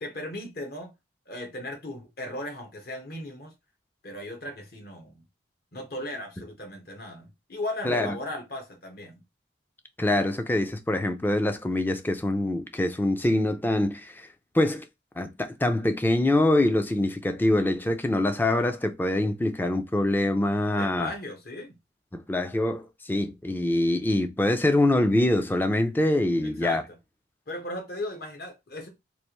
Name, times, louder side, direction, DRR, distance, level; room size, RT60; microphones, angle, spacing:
voice 1, 0.0-0.9 1.3-3.5 4.0-5.2 5.7-9.2 20.6-21.8 26.4-27.0 27.5-28.9, left 1 dB, 55° left, 1.2 m, -37 dB
voice 2, 7.8-8.2 10.0-14.3 14.5-14.9 15.2-21.1 22.1-26.8, left 1 dB, 10° left, 0.4 m, -24 dB
3.3 x 2.5 x 2.9 m
head